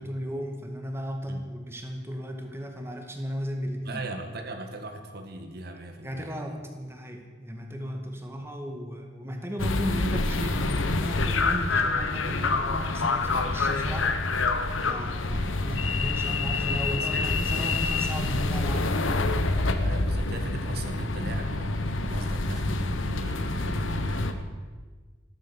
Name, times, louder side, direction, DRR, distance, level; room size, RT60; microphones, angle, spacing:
voice 1, 0.0-4.0 6.0-14.1 14.9-19.0, equal, 10° right, 3 dB, 2.0 m, -35 dB
voice 2, 3.8-6.4 15.2-15.5 16.9-17.7 19.8-24.3, right 2 dB, 50° right, 5 dB, 1.7 m, -39 dB
sound 1, 9.6-24.3, left 3 dB, 80° left, 1.2 m, -27 dB
15.5 x 13.0 x 7.2 m, 1.4 s
head